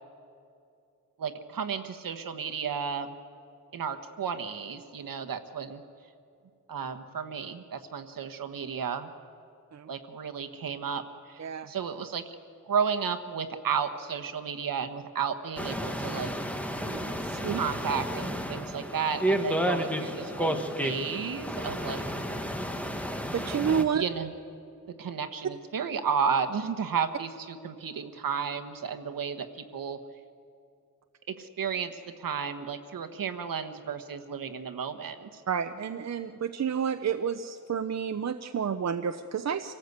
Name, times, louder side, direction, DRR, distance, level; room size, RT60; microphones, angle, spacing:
voice 1, 1.2-3.2 3.7-5.8 6.7-9.1 9.9-12.3 12.6-16.3 17.5-22.0 23.9-24.3 25.0-30.0 31.3-35.4, right 6 dB, 70° right, 8 dB, 1.4 m, -33 dB
sound 1, 15.6-23.8, equal, 5° left, 1.3 m, -32 dB
voice 2, 16.8-17.6 23.3-24.0 35.5-39.7, right 7 dB, 50° right, 8 dB, 0.7 m, -30 dB
26.5 x 17.5 x 8.2 m, 2.5 s
wide cardioid pair, 145°, 35 cm